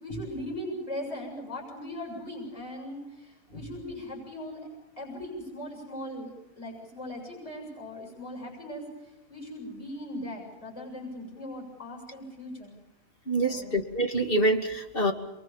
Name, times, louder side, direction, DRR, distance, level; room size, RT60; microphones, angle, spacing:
voice 1, 0.0-4.7 5.0-12.7 13.5-13.8, left 1 dB, 25° left, 1 dB, 7.3 m, -39 dB
voice 2, 13.3-15.1, right 1 dB, 40° left, 4 dB, 2.6 m, -26 dB
28.0 x 23.0 x 7.3 m, 1.0 s
omnidirectional pair, 1.5 m